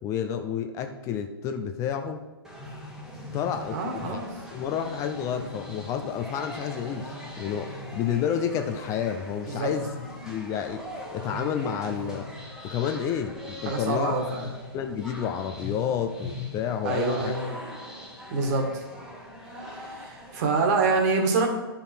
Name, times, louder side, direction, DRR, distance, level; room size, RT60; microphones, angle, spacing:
voice 1, 0.0-2.2 3.3-4.2 4.5-9.9 10.2-10.8 11.1-12.3 12.6-14.1 14.7-17.3, left 8 dB, 25° left, 7 dB, 0.6 m, -30 dB
sound 1, 2.4-20.7, left 1 dB, 5° right, 1.4 m, -40 dB
voice 2, 3.7-4.3 9.5-9.7 13.7-14.5 16.8-17.6 18.3-18.8 19.7-21.5, right 3 dB, 40° right, 3 dB, 1.9 m, -26 dB
11.0 x 5.5 x 4.4 m, 1.1 s
hypercardioid pair, 135°, 13 cm